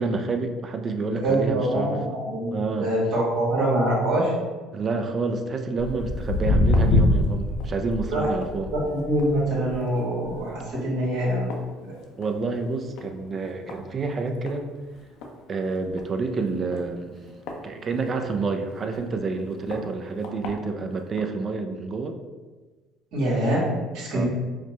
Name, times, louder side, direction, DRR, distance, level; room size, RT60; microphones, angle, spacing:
voice 1, 0.0-2.0 2.5-2.9 4.7-8.7 12.2-14.7 15.5-17.1 17.6-22.2 24.1-24.2, right 4 dB, 40° right, 6 dB, 0.4 m, -28 dB
voice 2, 1.1-4.3 8.1-8.3 8.7-11.5 11.8-11.9 23.1-23.6 23.9-24.3, right 1 dB, 70° right, -5 dB, 1.4 m, -24 dB
Walk footsteps, 5.8-12.5 12.8-13.1 13.7-13.8 14.5-14.6 14.9-15.0 15.2-15.3 15.9-16.1 16.7-18.3 18.9-19.0 19.7-19.8 20.2-20.5 21.2-21.3, left 2 dB, 70° left, 0.5 m, -25 dB
4.9 x 2.1 x 3.0 m, 1.3 s
hypercardioid pair, 70°, 0 cm